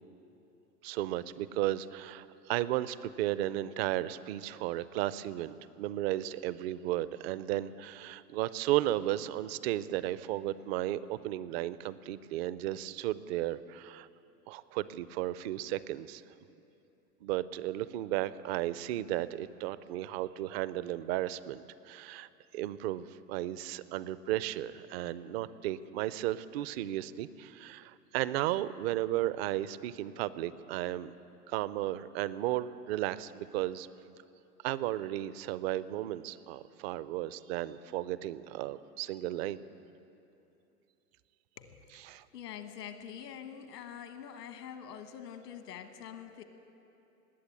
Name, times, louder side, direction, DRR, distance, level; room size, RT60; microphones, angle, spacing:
voice 1, 0.8-14.1 14.5-16.2 17.2-31.1 31.5-33.9 34.6-39.6 42.1-42.2, right 14 dB, 40° right, 17 dB, 0.5 m, -34 dB
voice 2, 41.6-46.4, left 9 dB, 75° left, 8 dB, 1.4 m, -45 dB
20.0 x 8.4 x 8.4 m, 2.9 s
hypercardioid pair, 110°, 48 cm